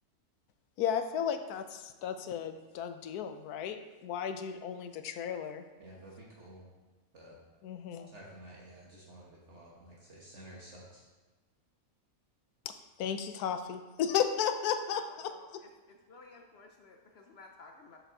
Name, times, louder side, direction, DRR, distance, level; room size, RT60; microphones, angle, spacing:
voice 1, 0.8-5.6 7.6-8.1 12.7-12.8 13.0-15.6, left 8 dB, 85° left, 8 dB, 1.1 m, -34 dB
voice 2, 5.8-6.6 7.1-7.4 8.1-11.0, right 1 dB, 50° right, -4 dB, 1.4 m, -51 dB
voice 3, 14.9-15.5 15.9-18.0, left 3 dB, 60° left, 3 dB, 0.7 m, -54 dB
6.9 x 6.4 x 3.8 m, 1.3 s
omnidirectional pair, 1.6 m